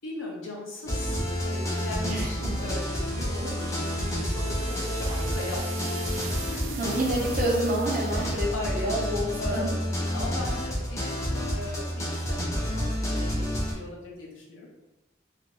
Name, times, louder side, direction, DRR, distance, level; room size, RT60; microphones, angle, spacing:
voice 1, 0.0-6.0 6.5-6.8 8.1-8.9 9.4-9.8 10.1-14.8, left 2 dB, 90° left, -2 dB, 0.7 m, -39 dB
sound 1, 0.9-13.7, equal, 15° left, 0.5 m, -29 dB
voice 2, 2.0-2.5 6.8-9.7, right 1 dB, 45° right, -3 dB, 0.6 m, -28 dB
sound 2, 2.8-8.4, right 6 dB, 85° right, 0.4 m, -43 dB
2.5 x 2.1 x 2.9 m, 1.0 s
head